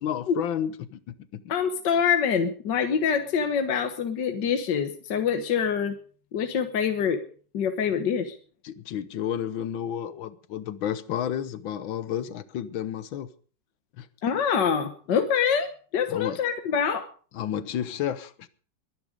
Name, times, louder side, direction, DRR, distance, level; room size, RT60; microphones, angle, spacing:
voice 1, 0.0-1.4 8.6-13.3 14.0-14.1 16.1-16.4 17.3-18.5, left 9 dB, 85° left, 1.8 m, -31 dB
voice 2, 1.5-6.0 6.3-7.2 7.5-8.4 14.2-17.1, left 7 dB, 65° left, 1.9 m, -25 dB
22.0 x 10.5 x 5.1 m
omnidirectional pair, 2.1 m